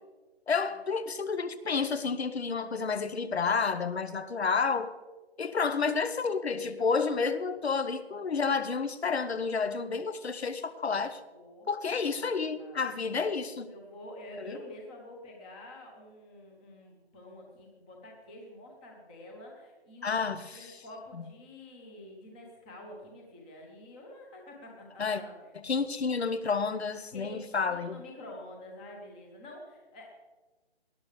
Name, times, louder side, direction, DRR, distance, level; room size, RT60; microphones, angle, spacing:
voice 1, 0.5-4.9 5.4-11.2 11.7-13.7 14.4-14.6 20.0-20.8 25.0-25.2 25.6-28.0, left 5 dB, 75° left, 12 dB, 1.1 m, -30 dB
voice 2, 11.3-12.9 13.7-20.2 20.5-25.3 27.1-30.1, left 1 dB, 10° left, 0 dB, 0.9 m, -48 dB
19.0 x 11.0 x 3.3 m, 1.2 s
hypercardioid pair, 165°, 32 cm